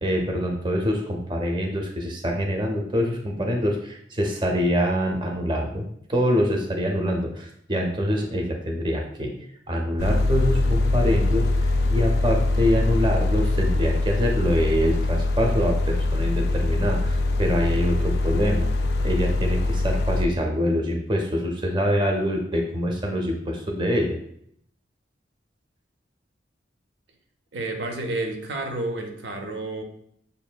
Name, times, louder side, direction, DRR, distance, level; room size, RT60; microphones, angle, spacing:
voice 1, 0.0-9.3 9.7-18.7 19.0-24.2, equal, 25° right, 2 dB, 0.5 m, -25 dB
sound 1, 10.0-20.2, left 2 dB, 60° left, 0.3 m, -23 dB
voice 2, 27.5-29.8, right 2 dB, 70° right, 3 dB, 0.7 m, -30 dB
6.7 x 2.5 x 2.2 m, 0.70 s
head